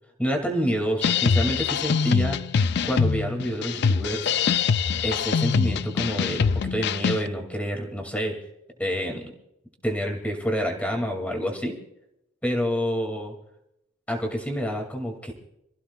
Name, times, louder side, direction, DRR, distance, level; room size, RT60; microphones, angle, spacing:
voice 1, 0.2-2.4 2.8-4.3 5.0-8.4 8.8-9.2 9.8-11.8 12.4-13.3 14.1-15.3, equal, 5° left, 2 dB, 2.5 m, -28 dB
sound 1, 1.0-7.3, left 6 dB, 55° left, 0.4 m, -24 dB
27.0 x 15.0 x 2.4 m, 0.81 s
head